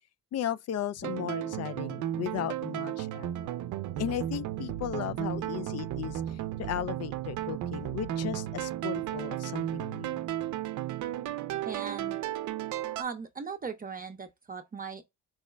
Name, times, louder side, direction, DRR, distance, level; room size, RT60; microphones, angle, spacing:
voice 1, 0.3-3.6 3.9-10.2, left 10 dB, 55° left, 0.4 m, -36 dB
sound 1, 1.0-13.0, right 12 dB, 75° right, 0.5 m, -34 dB
voice 2, 11.6-12.2 13.0-15.0, right 6 dB, 30° right, 0.6 m, -38 dB
4.7 x 2.1 x 3.2 m
cardioid pair, 90°, 30 cm